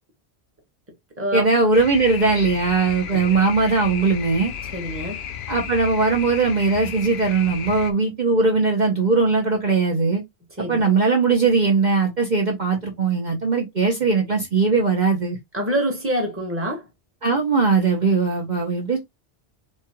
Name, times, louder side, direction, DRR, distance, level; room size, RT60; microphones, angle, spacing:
voice 1, 1.3-4.5 5.5-10.2 10.7-15.4 17.2-19.0, right 4 dB, 45° right, 1.0 m, -20 dB
sound 1, 1.7-7.9, left 8 dB, 70° left, 0.8 m, -34 dB
voice 2, 3.1-3.4 4.7-5.2 10.6-10.9 15.5-16.9, right 1 dB, 10° right, 1.3 m, -26 dB
4.3 x 2.4 x 2.9 m
omnidirectional pair, 1.1 m